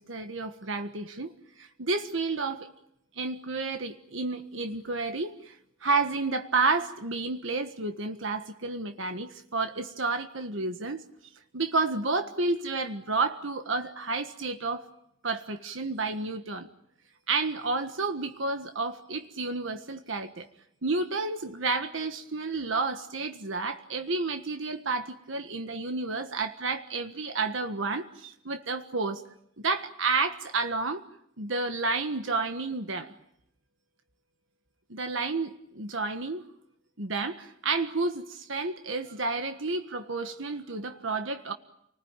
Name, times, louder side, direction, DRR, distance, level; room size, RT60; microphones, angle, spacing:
voice 1, 0.0-1.3 1.6-2.7 3.1-11.0 11.5-14.9 15.2-16.7 17.3-20.5 20.8-29.2 29.6-31.0 31.4-33.1 34.9-36.4 37.0-41.5, right 3 dB, 70° right, 7 dB, 1.6 m, -31 dB
29.5 x 20.0 x 9.1 m, 0.79 s
head